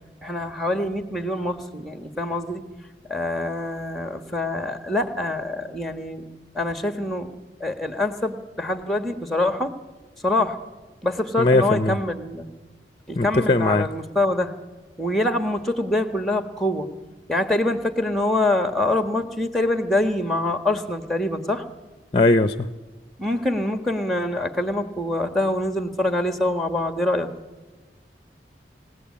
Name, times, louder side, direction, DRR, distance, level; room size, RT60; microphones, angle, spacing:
voice 1, 0.2-2.6 3.1-6.3 6.5-7.3 7.6-9.8 10.2-10.6 11.0-12.5 13.1-14.5 15.0-16.9 17.3-21.6 23.2-27.3, left 1 dB, ahead, 1.4 m, -25 dB
voice 2, 11.4-12.0 13.1-13.9 22.1-22.7, left 2 dB, 30° left, 0.7 m, -19 dB
30.0 x 17.5 x 8.5 m
head